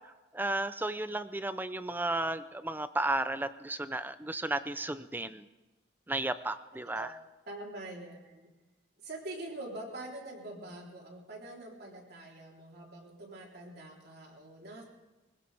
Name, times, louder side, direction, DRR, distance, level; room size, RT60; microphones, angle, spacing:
voice 1, 0.3-5.4 6.1-7.1, right 2 dB, 10° right, 12 dB, 0.6 m, -33 dB
voice 2, 6.8-7.1 7.5-8.5 9.0-14.9, right 2 dB, 55° right, -1 dB, 3.7 m, -44 dB
24.5 x 16.0 x 3.5 m, 1.1 s
head